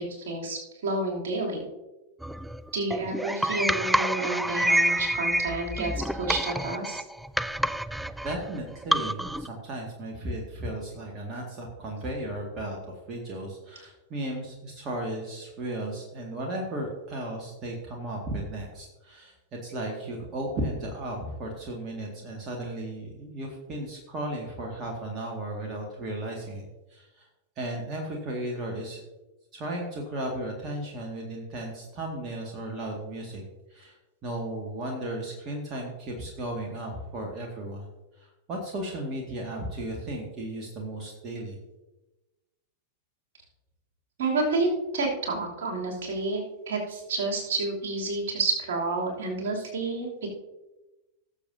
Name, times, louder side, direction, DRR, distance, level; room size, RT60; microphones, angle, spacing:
voice 1, 0.0-1.6 2.7-7.0 44.2-44.7 44.9-46.4 46.7-50.3, right 3 dB, 60° right, -1 dB, 3.0 m, -29 dB
sound 1, 2.2-9.5, right 1 dB, ahead, 0.3 m, -28 dB
voice 2, 8.2-27.3 27.6-29.0 29.5-33.4 33.7-37.9 38.2-41.6, right 1 dB, 30° right, -1 dB, 2.0 m, -35 dB
19.0 x 7.2 x 2.8 m, 1.1 s
figure-of-eight pair, 90°, 0 cm